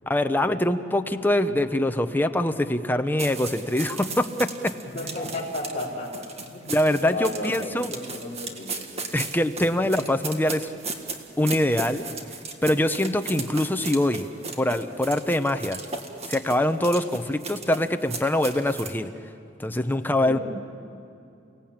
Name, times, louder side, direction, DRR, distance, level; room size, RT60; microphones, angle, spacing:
voice 1, 0.1-4.7 6.7-7.9 9.1-10.7 11.4-12.1 12.6-14.3 14.6-15.8 16.3-19.1 19.6-20.4, left 1 dB, 10° left, 8 dB, 0.9 m, -24 dB
sound 1, 3.2-19.0, right 4 dB, 35° right, 1.9 m, -36 dB
voice 2, 4.8-6.1 6.4-6.7 7.1-8.9 20.2-20.4, left 1 dB, 35° left, -8 dB, 5.0 m, -33 dB
29.5 x 18.0 x 8.9 m, 2.6 s
head